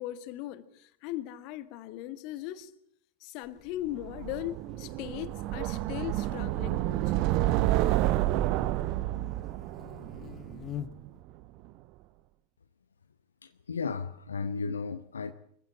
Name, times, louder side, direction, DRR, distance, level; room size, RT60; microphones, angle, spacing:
voice 1, 0.0-2.7 3.2-7.2, left 14 dB, 45° left, 1.6 m, -38 dB
Buzz, 3.4-11.2, left 10 dB, 30° left, 1.3 m, -48 dB
sound 1, 4.0-11.1, right 15 dB, 45° right, 0.8 m, -29 dB
voice 2, 13.4-15.3, left 5 dB, 75° left, 0.8 m, -34 dB
24.0 x 15.5 x 8.6 m
figure-of-eight pair, 85°, 0 cm